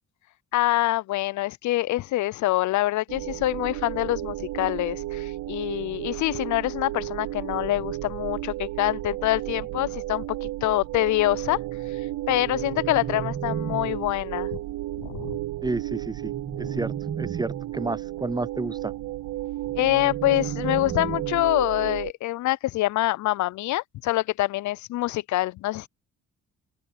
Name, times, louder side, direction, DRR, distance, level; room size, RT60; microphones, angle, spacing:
voice 1, 0.5-11.6 11.9-12.0 12.3-14.6 15.0-15.4 16.6-16.8 19.8-25.9, left 16 dB, 70° left, 0.5 m, -25 dB
sound 1, 3.1-22.1, right 16 dB, 85° right, 0.6 m, -33 dB
sound 2, 12.3-14.3 16.0-17.9 19.7-21.6, right 7 dB, 40° right, 2.2 m, -35 dB
voice 2, 15.6-18.9, right 3 dB, 15° right, 0.5 m, -31 dB
open air
cardioid pair, 90°, 30 cm